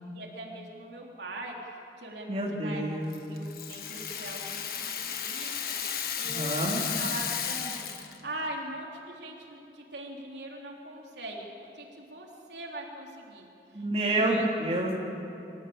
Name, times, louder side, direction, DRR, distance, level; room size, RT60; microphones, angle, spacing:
voice 1, 0.1-2.8 3.3-5.8 6.2-7.9 8.2-11.5 11.7-13.8 14.1-14.5, right 1 dB, 80° right, -1 dB, 3.4 m, -41 dB
voice 2, 2.3-3.2 6.2-6.8 13.7-14.9, right 1 dB, 35° right, -3 dB, 3.2 m, -28 dB
Rattle (instrument), 3.1-8.2, left 8 dB, 55° left, 1.6 m, -34 dB
25.0 x 15.5 x 8.7 m, 3.0 s
head